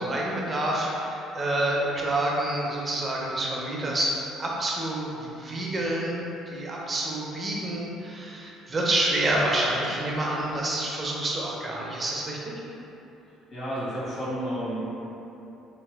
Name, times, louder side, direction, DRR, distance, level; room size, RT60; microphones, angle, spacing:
voice 1, 0.0-4.1 4.4-12.5, right 1 dB, 30° right, -3 dB, 0.6 m, -28 dB
voice 2, 13.5-14.9, equal, 50° left, -9 dB, 1.1 m, -31 dB
2.9 x 2.6 x 2.3 m, 2.9 s
hypercardioid pair, 55°, 0 cm